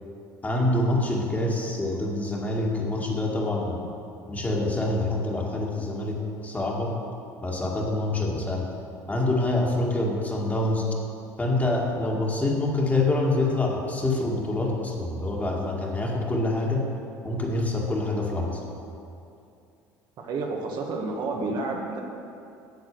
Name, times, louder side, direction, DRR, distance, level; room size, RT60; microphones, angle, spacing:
voice 1, 0.4-3.8 4.3-7.0 7.4-8.7 9.1-10.9 11.4-16.9 17.2-18.6, left 2 dB, 20° left, -2 dB, 2.1 m, -26 dB
voice 2, 20.2-22.0, right 3 dB, 55° right, 0 dB, 1.5 m, -30 dB
8.2 x 7.4 x 6.8 m, 2.6 s
hypercardioid pair, 75°, 9 cm